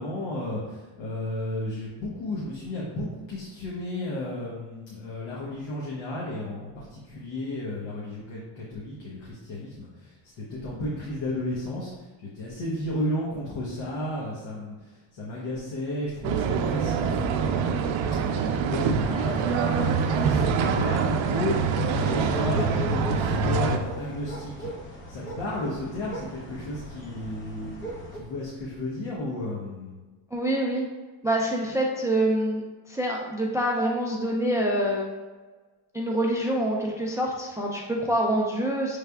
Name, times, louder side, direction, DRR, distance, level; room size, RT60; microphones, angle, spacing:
voice 1, 0.0-17.3 18.3-29.9, left 1 dB, 65° left, -4 dB, 1.0 m, -33 dB
sound 1, 16.2-23.8, right 5 dB, 70° right, 0.6 m, -25 dB
sound 2, 19.7-28.2, right 1 dB, 25° left, 0.8 m, -39 dB
voice 2, 30.3-30.8 31.2-32.6 32.9-35.1 35.9-39.0, right 1 dB, 5° right, -1 dB, 0.3 m, -26 dB
6.5 x 3.3 x 2.3 m, 1.3 s
cardioid pair, 125°, 47 cm